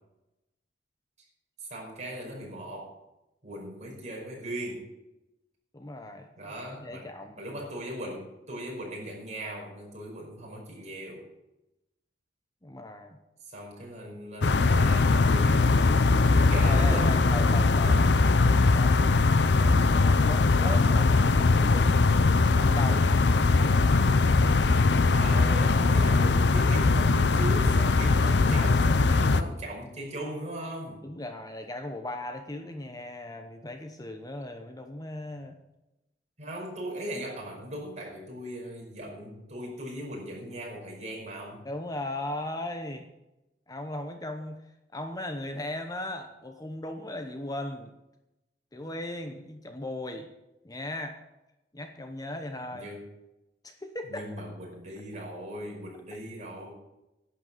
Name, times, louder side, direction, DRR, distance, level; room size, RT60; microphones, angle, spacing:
voice 1, 1.7-3.0 3.4-4.9 6.4-7.1 7.4-11.3 13.5-15.9 16.3-17.1 17.8-18.1 25.0-31.0 36.4-41.6 48.8-48.9 52.7-53.1 54.1-56.7, right 1 dB, 40° right, -2 dB, 5.1 m, -38 dB
voice 2, 5.7-6.3 6.7-7.4 12.6-13.2 16.6-18.0 18.7-19.0 19.5-22.0 22.5-23.1 31.0-35.6 41.6-43.1 43.7-44.6 44.9-47.9 48.7-50.3 50.6-51.2 51.7-52.9 53.6-54.3, left 1 dB, 20° left, 6 dB, 0.9 m, -37 dB
sound 1, 14.4-29.4, left 3 dB, 70° left, 0.6 m, -21 dB
11.0 x 8.3 x 7.5 m, 0.94 s
head